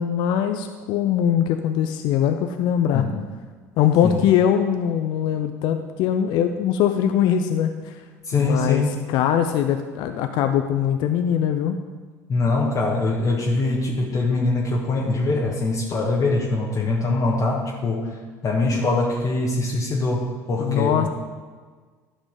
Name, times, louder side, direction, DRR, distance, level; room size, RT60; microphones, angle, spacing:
voice 1, 0.0-3.0 3.8-8.0 8.3-11.8 20.6-21.1, left 9 dB, 60° left, 7 dB, 0.6 m, -22 dB
voice 2, 8.2-9.0 12.3-21.1, left 3 dB, 40° left, -3 dB, 1.4 m, -23 dB
12.0 x 5.2 x 5.3 m, 1.5 s
hypercardioid pair, 65°, 9 cm